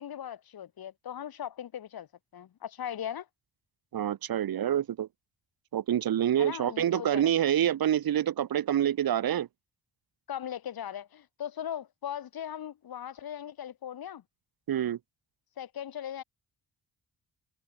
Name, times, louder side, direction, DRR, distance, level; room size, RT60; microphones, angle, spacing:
voice 1, 0.0-2.1 2.3-3.3 6.4-7.3 10.3-14.2 15.6-16.2, left 10 dB, 65° left, 7.6 m, -38 dB
voice 2, 3.9-5.1 5.7-9.5 14.7-15.0, right 10 dB, 60° right, 2.4 m, -27 dB
wide cardioid pair, 165°, 39 cm